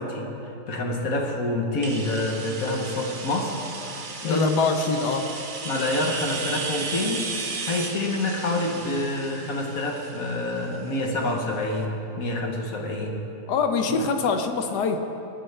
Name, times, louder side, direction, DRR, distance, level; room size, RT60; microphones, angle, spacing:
voice 1, 0.0-3.6 4.2-4.5 5.6-7.3 7.6-13.2, left 2 dB, 60° left, 1 dB, 1.4 m, -27 dB
sound 1, 1.8-11.5, right 4 dB, 45° right, 0.7 m, -35 dB
voice 2, 4.2-5.3 13.5-15.0, left 4 dB, 80° left, 6 dB, 1.4 m, -24 dB
18.0 x 7.9 x 3.3 m, 3.0 s
omnidirectional pair, 1.7 m